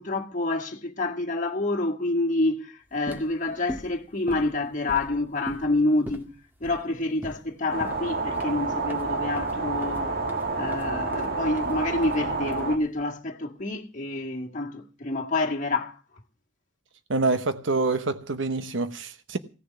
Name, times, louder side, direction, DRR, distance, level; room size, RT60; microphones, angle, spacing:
voice 1, 0.0-6.3 6.6-10.2 10.5-16.0, left 2 dB, 40° left, 1.9 m, -28 dB
sound 1, 2.9-13.1, equal, 10° right, 1.7 m, -42 dB
sound 2, 7.7-12.8, right 3 dB, 55° right, 2.4 m, -29 dB
voice 2, 17.1-19.4, right 3 dB, 80° right, 1.0 m, -26 dB
16.5 x 6.8 x 9.4 m
head